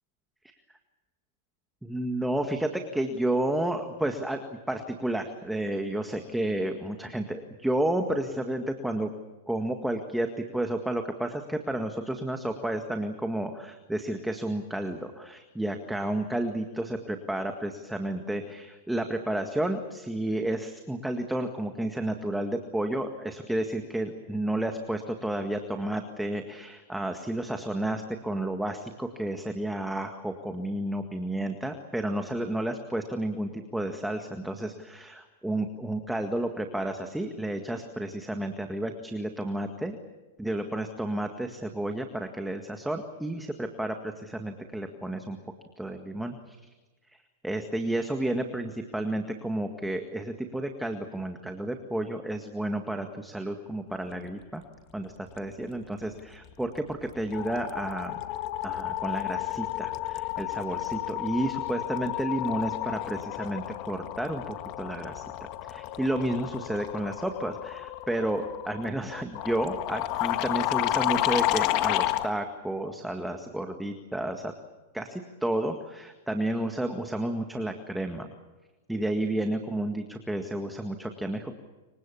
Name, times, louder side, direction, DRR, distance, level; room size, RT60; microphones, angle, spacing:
voice 1, 1.8-9.1 9.5-40.0 40.4-45.4 45.8-46.6 47.1-54.6 54.9-58.2 58.6-65.2 65.6-74.5 74.9-78.3 78.9-81.5, right 1 dB, 5° right, 5 dB, 1.9 m, -31 dB
sound 1, 56.5-56.8 57.0-72.3, left 15 dB, 45° left, 1.7 m, -31 dB
28.0 x 24.5 x 7.2 m, 1.2 s
hypercardioid pair, 120°, 0 cm